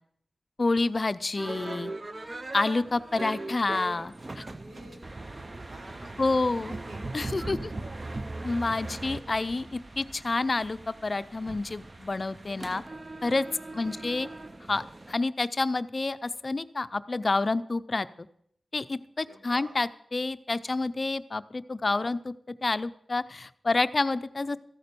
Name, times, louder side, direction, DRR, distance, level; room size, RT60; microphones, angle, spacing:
voice 1, 0.6-1.9 2.5-4.4 6.2-6.7 7.1-7.7 8.4-12.8 13.2-13.5 13.7-14.3 14.7-18.3 18.7-22.3 22.6-24.6, left 3 dB, 40° left, 13 dB, 0.5 m, -29 dB
sound 1, 1.3-15.1, right 2 dB, 30° right, 0.5 m, -39 dB
voice 2, 4.4-7.0 8.1-8.5 13.7-14.1 19.3-19.8, right 2 dB, 90° right, 2 dB, 2.9 m, -50 dB
13.5 x 8.7 x 6.8 m, 0.69 s
wide cardioid pair, 115°, 0 cm